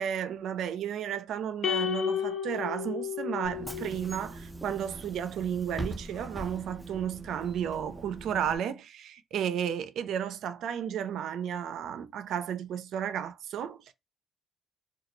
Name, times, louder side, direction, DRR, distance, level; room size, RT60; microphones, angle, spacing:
voice 1, 0.0-13.9, right 9 dB, 75° right, 0.3 m, -33 dB
sound 1, 1.6-4.1, left 9 dB, 60° left, 0.4 m, -32 dB
Bus / Engine, 3.4-8.6, right 1 dB, 5° right, 0.4 m, -42 dB
2.2 x 2.0 x 3.0 m
cardioid pair, 90°, 0 cm